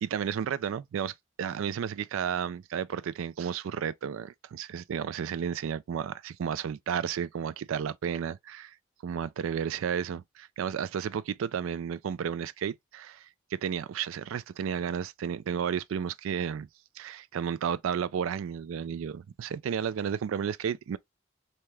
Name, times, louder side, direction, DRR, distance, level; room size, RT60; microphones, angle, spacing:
voice 1, 0.0-8.7 9.0-13.3 13.5-16.7 17.0-21.0, right 8 dB, 85° right, 0.3 m, -32 dB
3.2 x 2.8 x 2.2 m
head